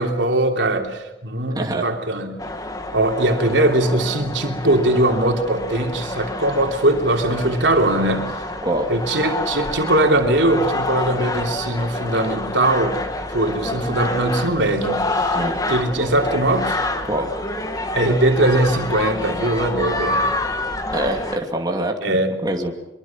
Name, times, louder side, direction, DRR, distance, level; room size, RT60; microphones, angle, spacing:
voice 1, 0.0-2.4 2.9-8.3 8.9-13.0 13.3-15.3 15.7-16.8 17.9-20.3 22.0-22.3, right 1 dB, 90° right, 3 dB, 3.2 m, -20 dB
voice 2, 1.5-1.9 8.6-8.9 15.3-15.6 17.0-17.3 20.9-22.7, right 1 dB, 20° right, 2 dB, 2.5 m, -25 dB
sound 1, 2.4-21.4, left 2 dB, 20° left, 1.9 m, -27 dB
24.0 x 23.0 x 7.3 m, 0.96 s
head